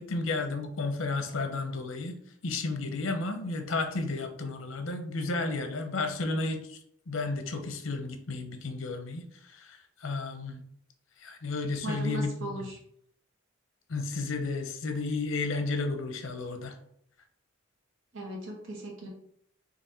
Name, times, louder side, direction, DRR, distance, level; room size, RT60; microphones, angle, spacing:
voice 1, 0.0-2.1 2.4-6.8 7.1-9.2 9.5-10.6 11.2-12.5 13.9-16.8, left 3 dB, 85° left, 6 dB, 0.8 m, -32 dB
voice 2, 11.8-12.8 18.1-19.1, right 1 dB, 70° right, -1 dB, 1.5 m, -37 dB
4.0 x 2.9 x 4.3 m, 0.67 s
head